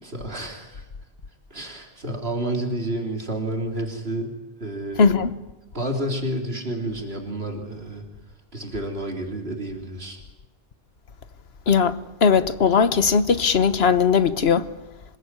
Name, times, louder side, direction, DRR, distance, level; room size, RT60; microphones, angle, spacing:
voice 1, 0.0-0.9 1.5-4.3 4.6-5.1 5.7-8.0 8.5-10.2, right 1 dB, 75° right, 3.8 m, -30 dB
voice 2, 5.0-5.3 11.7-14.7, left 6 dB, 80° left, 1.4 m, -19 dB
26.5 x 21.5 x 9.8 m
omnidirectional pair, 1.0 m